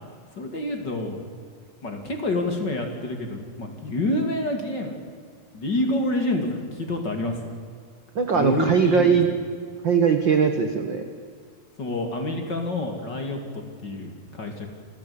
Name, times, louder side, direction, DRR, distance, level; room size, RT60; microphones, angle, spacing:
voice 1, 0.4-1.2 1.8-5.0 5.5-7.4 8.3-9.2 11.8-14.7, left 1 dB, 30° left, 4 dB, 2.8 m, -28 dB
voice 2, 8.1-9.3 9.8-11.0, right 6 dB, 65° right, 7 dB, 1.1 m, -20 dB
27.5 x 16.0 x 8.8 m, 2.1 s
omnidirectional pair, 4.4 m